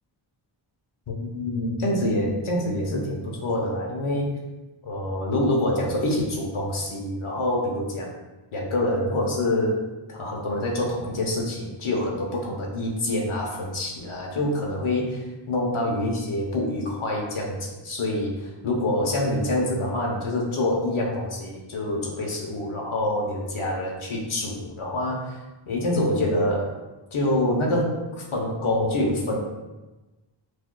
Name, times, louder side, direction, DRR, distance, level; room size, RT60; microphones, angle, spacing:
voice 1, 1.1-4.4 4.8-8.2 8.5-9.8 10.1-25.4 25.7-26.7 27.1-29.4, left 1 dB, 80° left, -1 dB, 0.9 m, -26 dB
6.1 x 2.6 x 2.2 m, 1.1 s
wide cardioid pair, 85°, 49 cm